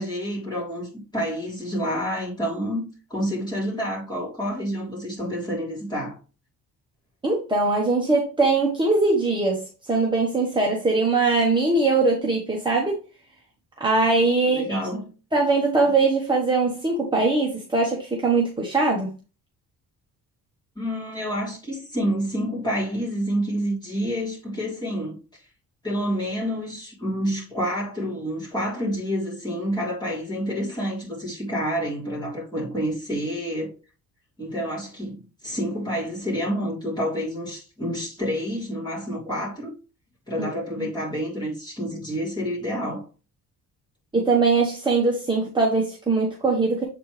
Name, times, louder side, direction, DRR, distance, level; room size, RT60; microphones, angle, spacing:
voice 1, 0.0-6.2 14.5-15.1 20.8-25.2 25.8-33.7 34.4-39.7 40.3-43.1, equal, 10° left, 3.6 m, -28 dB
voice 2, 7.2-13.0 13.8-14.8 15.3-19.1 40.4-40.5 40.8-40.9 44.1-46.8, right 3 dB, 10° right, 1.2 m, -21 dB
7.9 x 4.5 x 3.3 m
cardioid pair, 145°, 38 cm